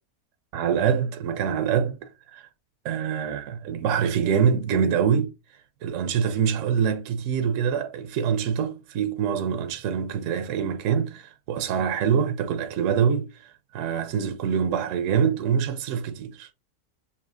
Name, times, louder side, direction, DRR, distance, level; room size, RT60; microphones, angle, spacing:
voice 1, 0.5-2.0 2.3-2.5 2.8-5.3 5.8-16.5, right 7 dB, 65° right, 0.8 m, -25 dB
5.5 x 2.7 x 2.5 m
omnidirectional pair, 1.6 m